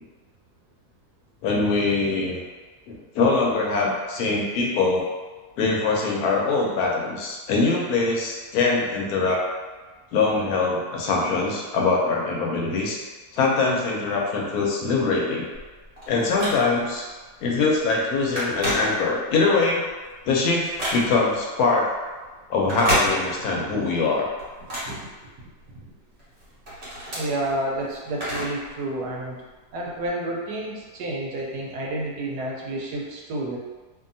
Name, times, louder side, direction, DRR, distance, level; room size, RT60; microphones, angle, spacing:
voice 1, 1.4-2.4 2.9-5.1 5.6-9.4 10.1-13.0 13.3-15.5 16.1-17.1 17.4-19.8 20.3-21.8 22.5-24.3, left 3 dB, 80° left, -2 dB, 1.1 m, -23 dB
Telephone, 15.6-17.0 17.5-17.7 17.9-19.4 19.8-21.4 22.5-23.7 24.0-25.7 26.2-28.7 29.0-29.1 30.0-30.1, equal, 45° right, 1.2 m, -30 dB
voice 2, 27.1-29.4 29.7-33.6, right 1 dB, 85° right, -2 dB, 1.2 m, -30 dB
2.7 x 2.6 x 2.6 m, 1.3 s
omnidirectional pair, 1.7 m